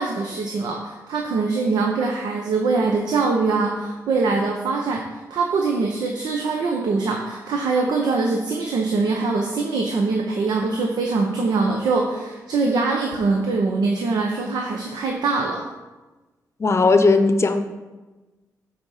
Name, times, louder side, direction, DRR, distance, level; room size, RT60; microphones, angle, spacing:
voice 1, 0.0-5.0 5.3-15.6, right 3 dB, 85° right, 1 dB, 0.8 m, -23 dB
voice 2, 16.6-17.6, left 3 dB, 40° left, 8 dB, 0.6 m, -17 dB
7.9 x 4.1 x 5.6 m, 1.2 s
cardioid pair, 70°, 7 cm